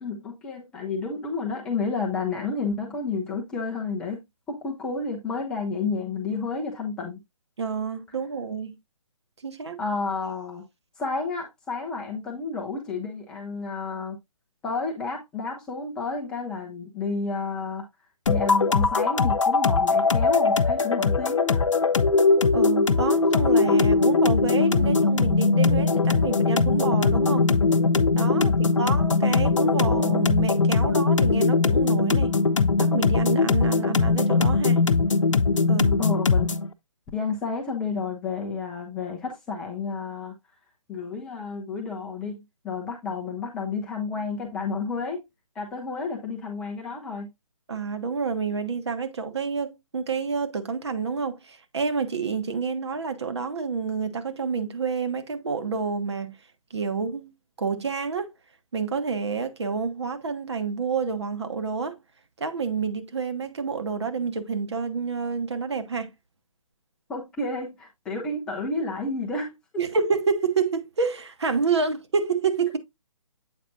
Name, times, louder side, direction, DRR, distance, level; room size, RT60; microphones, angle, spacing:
voice 1, 0.0-4.2 4.5-7.2 9.8-10.6 11.0-14.2 14.6-17.9 18.3-21.6 36.0-36.5 37.1-40.3 40.9-45.2 45.6-47.3 67.1-69.5, left 4 dB, 5° left, 0.4 m, -31 dB
voice 2, 7.6-8.8 9.4-9.8 22.5-27.5 28.1-32.3 32.8-34.8 35.6-36.0 47.7-56.4 56.7-57.3 57.6-58.3 58.7-62.0 62.4-66.1 69.8-72.8, right 5 dB, 55° right, 1.1 m, -28 dB
sound 1, 18.3-36.7, left 4 dB, 65° left, 0.7 m, -21 dB
7.9 x 5.0 x 2.5 m
figure-of-eight pair, 140°, 17 cm